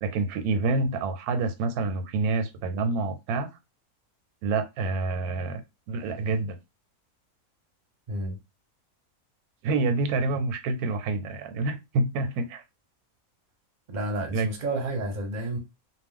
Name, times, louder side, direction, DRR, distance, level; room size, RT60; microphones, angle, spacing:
voice 1, 0.0-3.5 4.4-5.6 5.9-6.6 9.6-12.6 14.3-14.5, right 3 dB, 85° right, 1.1 m, -27 dB
voice 2, 13.9-15.6, right 1 dB, 45° right, 0.6 m, -30 dB
2.4 x 2.1 x 3.6 m
omnidirectional pair, 1.5 m